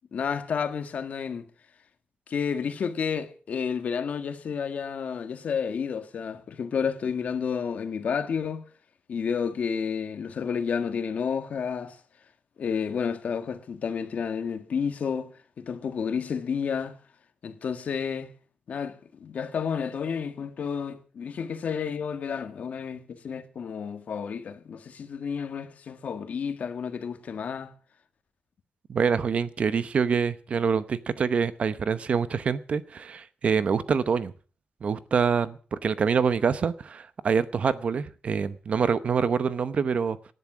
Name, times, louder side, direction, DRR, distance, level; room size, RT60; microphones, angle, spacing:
voice 1, 0.1-1.5 2.3-8.6 9.1-12.0 12.6-17.0 17.4-18.3 18.7-27.7, left 6 dB, 50° left, 1.7 m, -31 dB
voice 2, 28.9-34.3 34.8-40.2, right 6 dB, 45° right, 0.8 m, -26 dB
18.5 x 11.0 x 6.1 m
wide cardioid pair, 175°, 3 cm